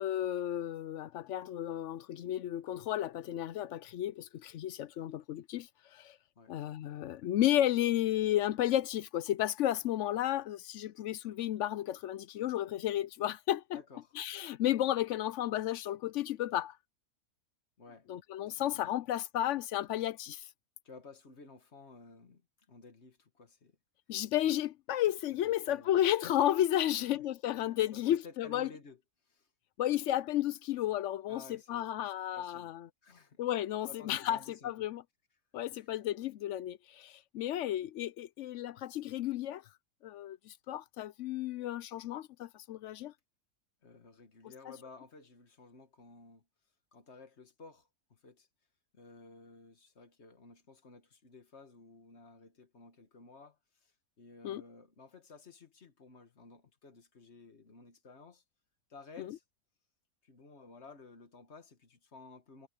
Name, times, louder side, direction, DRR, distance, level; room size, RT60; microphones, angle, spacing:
voice 1, 0.0-6.2 6.5-13.8 14.2-16.8 18.1-20.4 24.1-28.7 29.8-32.9 33.4-34.4 34.6-35.0 35.5-39.6 40.0-43.1 54.4-54.6 59.2-59.4, left 12 dB, 65° left, 0.8 m, -33 dB
voice 2, 13.7-14.1 17.8-18.1 18.7-18.9 20.8-23.8 25.4-26.0 26.9-27.2 27.9-29.5 31.3-31.8 32.3-32.7 33.0-33.4 33.8-34.9 35.7-35.9 43.8-46.4 46.9-48.5 48.9-58.4 58.9-59.4 60.2-62.7, left 4 dB, 45° left, 1.7 m, -54 dB
omnidirectional pair, 1.6 m